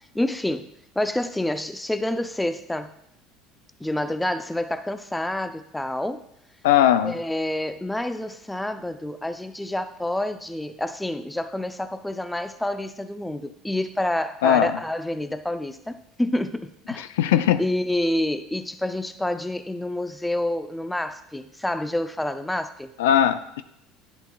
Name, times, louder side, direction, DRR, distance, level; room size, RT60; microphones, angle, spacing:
voice 1, 0.1-2.9 3.8-6.2 7.0-22.9, left 1 dB, 5° left, 10 dB, 0.5 m, -28 dB
voice 2, 6.6-7.1 14.4-14.7 17.0-17.6 23.0-23.6, left 11 dB, 85° left, 12 dB, 0.4 m, -19 dB
10.5 x 8.0 x 2.3 m, 0.78 s
supercardioid pair, 95°, 0 cm